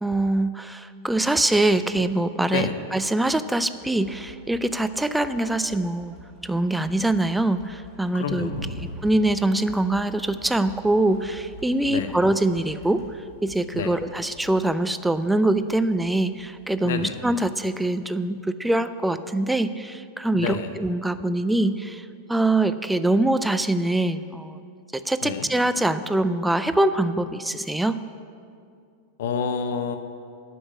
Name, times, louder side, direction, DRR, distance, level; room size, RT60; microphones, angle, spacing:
voice 1, 0.0-6.1 6.4-8.5 8.8-13.0 13.4-24.6 24.9-28.0, right 2 dB, 5° right, 12 dB, 0.4 m, -24 dB
sound 1, 3.7-13.2, equal, 10° left, 2.8 m, -48 dB
voice 2, 8.1-8.8 11.9-12.1 13.7-14.0 16.8-17.2 20.3-20.7 25.2-25.5 29.2-30.0, left 6 dB, 60° left, 8 dB, 0.8 m, -28 dB
Thunder, 8.5-17.9, equal, 70° right, 1.4 m, -44 dB
8.6 x 6.9 x 8.5 m, 2.4 s
figure-of-eight pair, 90°, 0 cm